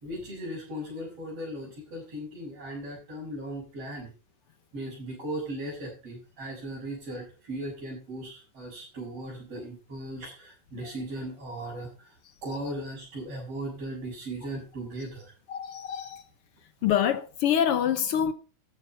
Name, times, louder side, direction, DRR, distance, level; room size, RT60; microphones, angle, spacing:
voice 1, 0.0-4.1 4.7-12.1 12.4-15.3, right 1 dB, 55° right, 6.6 m, -37 dB
voice 2, 15.5-16.2 16.8-18.3, left 9 dB, 65° left, 1.5 m, -26 dB
13.5 x 8.1 x 4.4 m
omnidirectional pair, 3.4 m